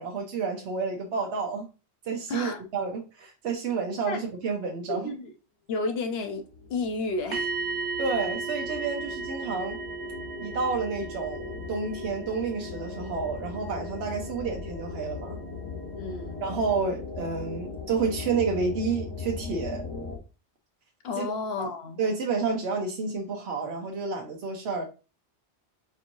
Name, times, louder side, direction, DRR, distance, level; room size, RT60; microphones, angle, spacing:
voice 1, 0.0-1.7 2.1-5.1 8.0-9.8 10.4-15.4 16.4-19.8 21.2-21.3 21.6-21.7 22.0-24.8, right 4 dB, 75° right, 1.0 m, -30 dB
voice 2, 2.3-2.6 4.0-4.2 4.9-5.3 5.7-6.4 6.7-7.5 16.0-16.4 21.0-22.0, left 3 dB, 70° left, 0.9 m, -31 dB
sound 1, 6.4-20.2, left 4 dB, 20° left, 0.9 m, -39 dB
sound 2, 7.3-15.2 15.4-15.7, right 4 dB, 50° right, 0.6 m, -36 dB
4.4 x 3.0 x 2.6 m
omnidirectional pair, 1.1 m